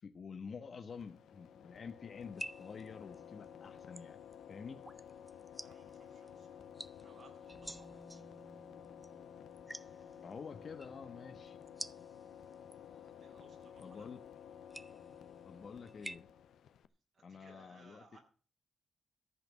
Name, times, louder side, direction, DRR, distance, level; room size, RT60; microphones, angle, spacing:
voice 1, 0.0-4.2 4.5-4.8 10.2-11.6 13.8-14.2 15.4-16.3 17.2-18.2, left 5 dB, 60° left, 5 dB, 1.1 m, -49 dB
sound 1, 0.9-16.9, left 9 dB, 80° left, 0.7 m, -53 dB
sound 2, 2.2-16.2, right 1 dB, 10° right, 0.6 m, -52 dB
voice 2, 5.6-6.6 7.0-8.2 12.9-14.1 17.1-18.2, right 3 dB, 70° right, 0 dB, 6.8 m, -63 dB
14.5 x 5.9 x 8.4 m, 0.39 s
supercardioid pair, 55°, 0 cm